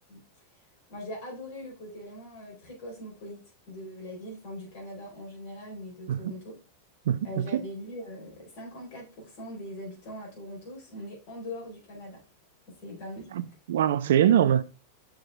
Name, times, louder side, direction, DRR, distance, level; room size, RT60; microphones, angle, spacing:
voice 1, 0.9-3.4 3.7-6.6 7.2-12.2 12.7-13.3, equal, 50° left, 4.1 m, -41 dB
voice 2, 7.1-7.5 13.3-14.6, right 10 dB, 60° right, 0.4 m, -23 dB
6.5 x 6.2 x 3.4 m
figure-of-eight pair, 90°, 0 cm